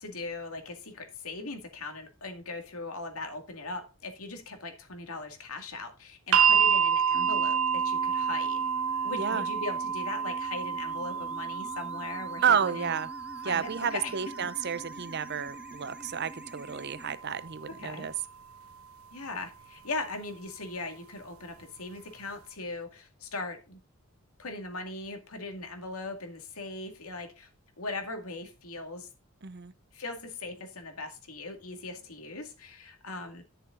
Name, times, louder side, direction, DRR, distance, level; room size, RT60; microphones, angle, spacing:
voice 1, 0.0-8.7 9.0-13.0 13.4-14.1 17.7-18.1 19.1-23.8 24.4-27.5 27.8-29.1 29.9-33.4, left 2 dB, 85° left, 2.2 m, -39 dB
sound 1, 6.3-18.4 19.5-19.6, right 7 dB, 80° right, 1.3 m, -30 dB
sound 2, 7.1-17.2, equal, 5° right, 1.3 m, -46 dB
voice 2, 12.4-13.1 13.4-18.1 29.4-29.7, right 7 dB, 50° right, 0.7 m, -30 dB
11.0 x 6.8 x 3.9 m
head